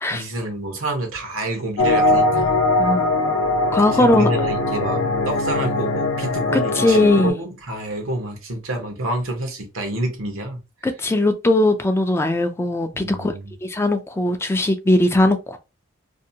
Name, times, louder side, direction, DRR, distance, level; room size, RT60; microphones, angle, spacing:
voice 1, 0.1-2.6 3.9-10.6 12.9-13.5, right 1 dB, 90° right, 0.9 m, -28 dB
sound 1, 1.8-7.3, left 2 dB, 80° left, 0.5 m, -21 dB
voice 2, 3.7-4.3 6.5-7.4 10.8-13.3 13.6-15.6, left 2 dB, 10° left, 0.3 m, -19 dB
2.6 x 2.1 x 2.7 m
head